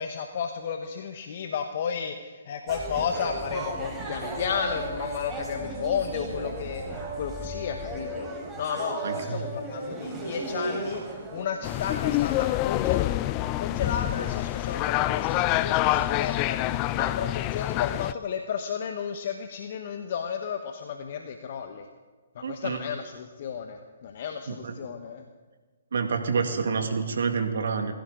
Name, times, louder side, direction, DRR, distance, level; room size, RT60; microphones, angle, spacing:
voice 1, 0.0-21.9 22.3-25.3, left 7 dB, 50° left, 5 dB, 1.3 m, -33 dB
sound 1, 2.7-11.5, right 1 dB, 10° right, 4.3 m, -35 dB
voice 2, 9.0-9.5 22.4-22.8 24.5-24.7 25.9-27.9, right 5 dB, 70° right, 5 dB, 2.0 m, -28 dB
sound 2, 11.6-18.1, left 15 dB, 30° left, 0.5 m, -26 dB
22.0 x 15.5 x 4.0 m, 1.3 s
figure-of-eight pair, 135°, 0 cm